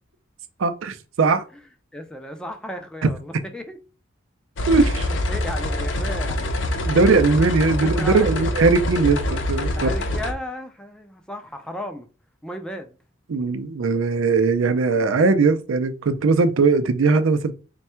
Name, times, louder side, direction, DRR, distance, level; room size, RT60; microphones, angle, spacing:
voice 1, 0.6-1.4 4.7-5.1 6.9-9.9 13.3-17.5, right 4 dB, 85° right, 0.5 m, -19 dB
voice 2, 1.9-3.8 4.8-6.6 6.9-8.5 9.8-12.1 12.4-12.9 14.9-15.4, left 1 dB, 5° left, 0.4 m, -35 dB
sound 1, 4.6-10.3, left 1 dB, 65° left, 0.6 m, -25 dB
3.4 x 2.2 x 4.2 m
head